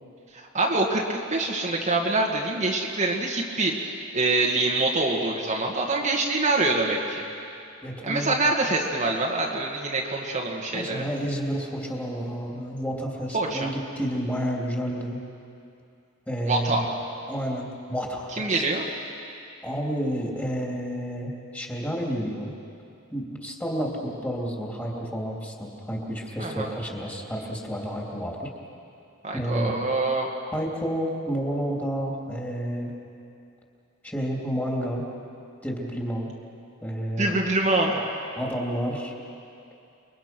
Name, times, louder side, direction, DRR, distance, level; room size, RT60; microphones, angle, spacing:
voice 1, 0.3-7.2 8.0-11.0 13.3-13.7 16.4-16.9 18.3-18.8 26.4-26.7 29.2-30.3 37.2-38.0, right 2 dB, 35° right, -1 dB, 1.9 m, -25 dB
voice 2, 7.8-8.3 10.7-15.2 16.3-16.9 17.3-18.6 19.6-22.5 23.1-28.5 29.3-29.8 30.5-32.9 34.0-35.1 35.6-36.3 36.8-37.4 38.4-39.1, equal, 10° left, -2 dB, 3.2 m, -30 dB
29.0 x 22.5 x 6.1 m, 2.6 s
head